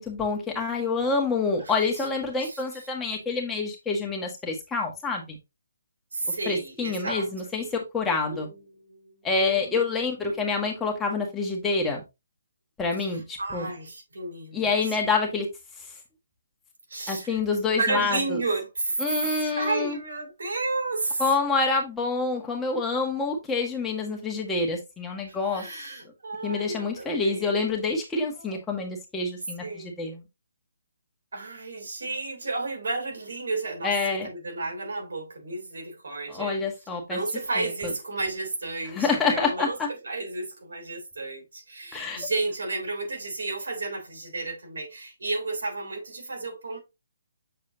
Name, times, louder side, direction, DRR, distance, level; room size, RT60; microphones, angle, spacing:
voice 1, 0.0-5.4 6.4-8.5 9.2-12.0 12.8-13.7 14.5-15.5 17.1-18.4 19.0-20.0 21.2-25.7 26.4-30.2 33.8-34.3 36.3-37.2 37.6-37.9 38.9-39.9 41.9-42.3, left 4 dB, 10° left, 1.7 m, -27 dB
voice 2, 1.6-2.1 2.4-2.6 6.1-7.3 7.6-7.7 8.2-9.8 13.0-14.7 16.9-17.4 17.7-21.2 25.3-27.5 28.4-28.6 29.6-29.9 31.3-36.6 37.1-39.8 40.0-46.8, right 3 dB, 80° right, 3.4 m, -32 dB
7.2 x 4.7 x 2.8 m
hypercardioid pair, 155°, 0 cm